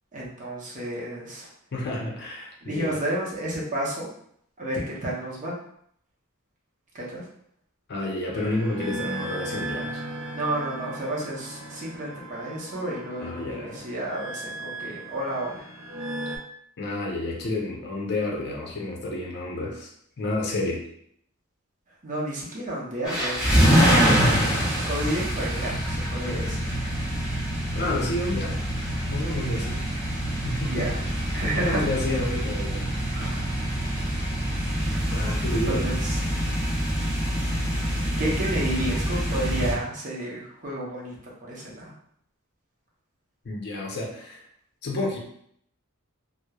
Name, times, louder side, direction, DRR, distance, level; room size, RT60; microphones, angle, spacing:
voice 1, 0.1-1.5 2.6-4.1 4.6-5.6 6.9-7.3 10.3-15.7 22.0-23.9 24.9-26.7 30.6-31.0 31.3-31.8 33.1-33.5 35.5-36.2 38.2-41.9, right 1 dB, 35° right, -4 dB, 0.6 m, -31 dB
voice 2, 1.7-3.0 7.9-10.0 13.2-13.9 16.8-19.9 20.2-20.8 27.7-28.6 29.1-29.9 30.4-31.3 31.5-32.9 35.1-35.8 43.4-44.4 44.8-45.2, left 2 dB, 50° left, -1 dB, 0.5 m, -30 dB
sound 1, 8.3-16.4, right 1 dB, 80° right, 0.4 m, -37 dB
sound 2, 23.0-39.7, equal, 5° right, 0.8 m, -25 dB
2.9 x 2.0 x 2.2 m, 0.68 s
head